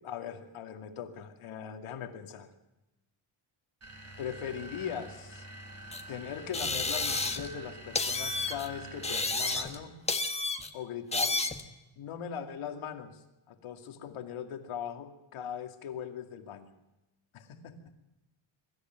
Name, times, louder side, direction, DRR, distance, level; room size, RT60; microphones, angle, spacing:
voice 1, 0.0-2.5 4.2-5.5 6.1-9.9 10.7-11.4 12.0-16.7 17.3-17.7, left 8 dB, 80° left, 5 dB, 2.5 m, -40 dB
sound 1, 3.8-10.0, right 1 dB, 30° right, 3.2 m, -47 dB
sound 2, 5.9-6.0 6.5-7.6 7.9-8.7 9.0-9.8 10.1-10.7 11.1-11.6, left 3 dB, 15° left, 1.3 m, -31 dB
23.5 x 13.5 x 9.1 m, 1.0 s
cardioid pair, 150°, 49 cm